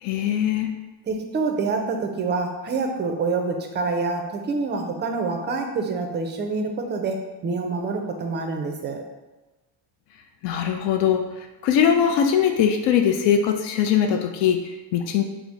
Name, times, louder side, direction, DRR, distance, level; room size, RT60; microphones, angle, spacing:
voice 1, 0.0-0.7 10.4-11.2 11.6-15.2, left 8 dB, 70° left, 5 dB, 0.5 m, -21 dB
voice 2, 1.1-9.0, right 4 dB, 25° right, 3 dB, 0.4 m, -26 dB
4.1 x 2.1 x 4.5 m, 1.1 s
cardioid pair, 150°, 45 cm